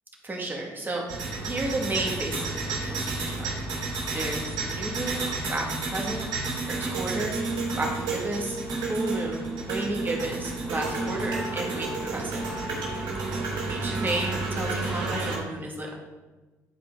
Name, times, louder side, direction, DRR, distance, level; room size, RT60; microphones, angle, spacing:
voice 1, 0.2-1.1 1.4-3.5 3.8-6.3 6.7-8.6 8.9-12.4 13.7-15.9, right 2 dB, 25° right, -1 dB, 2.2 m, -32 dB
sound 1, 1.1-15.4, right 3 dB, 75° right, 2.5 m, -31 dB
11.0 x 4.7 x 3.9 m, 1.2 s
supercardioid pair, 65°, 8 cm